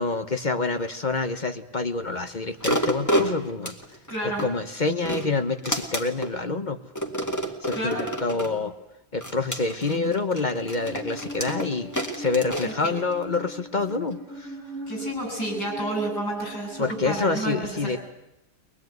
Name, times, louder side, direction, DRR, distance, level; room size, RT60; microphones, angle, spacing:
voice 1, 0.0-3.8 4.4-6.8 7.6-8.7 9.1-14.5 16.8-18.0, left 3 dB, 35° left, 9 dB, 1.0 m, -27 dB
sound 1, 2.6-4.5 4.9-6.3 7.0-8.6 9.2-13.4 13.9-14.0, equal, 10° left, 1.9 m, -29 dB
voice 2, 4.1-4.5 7.7-8.0 12.6-13.0 14.9-18.0, right 1 dB, 80° left, 1 dB, 8.4 m, -30 dB
Musical instrument, 10.4-17.2, equal, 50° right, 1.5 m, -40 dB
23.0 x 21.0 x 9.3 m, 0.90 s
omnidirectional pair, 1.7 m